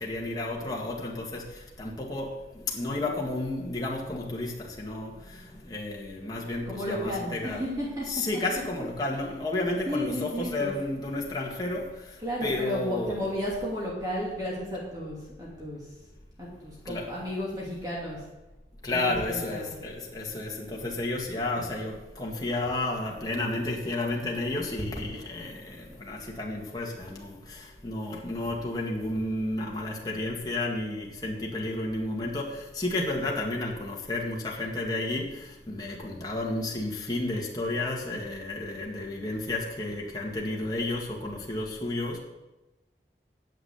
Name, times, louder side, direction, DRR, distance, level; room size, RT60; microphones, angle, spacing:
voice 1, 0.0-1.5 1.8-2.3 2.7-7.7 8.0-11.9 12.4-13.3 16.9-17.1 18.8-42.2, left 2 dB, 20° left, -2 dB, 1.9 m, -32 dB
voice 2, 6.7-8.1 8.3-8.4 9.9-10.7 12.2-15.9 16.4-18.2 18.9-19.8, equal, 20° right, -5 dB, 2.7 m, -33 dB
9.6 x 7.5 x 8.1 m, 1.1 s
head